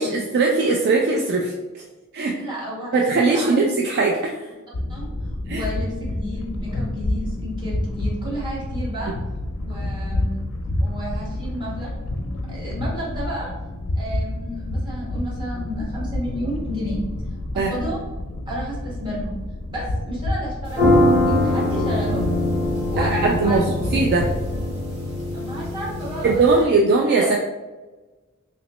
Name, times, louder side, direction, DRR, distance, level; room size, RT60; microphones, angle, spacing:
voice 1, 0.0-1.5 2.1-2.3 2.9-4.4 5.5-5.7 17.6-17.7 23.0-23.6 23.9-24.3 26.2-27.4, right 3 dB, 50° right, 1 dB, 0.3 m, -20 dB
voice 2, 2.4-3.6 4.9-5.0 5.5-9.1 9.6-10.4 10.8-11.9 12.5-13.5 14.0-17.0 17.5-18.0 18.5-19.3 19.7-22.3 22.9-23.7 25.3-26.7 27.2-27.3, equal, 20° right, -7 dB, 1.3 m, -31 dB
sound 1, 4.7-24.6, left 1 dB, 60° left, 0.4 m, -29 dB
sound 2, 20.7-26.6, left 1 dB, 70° right, 1.2 m, -22 dB
3.0 x 2.9 x 3.0 m, 1.2 s
head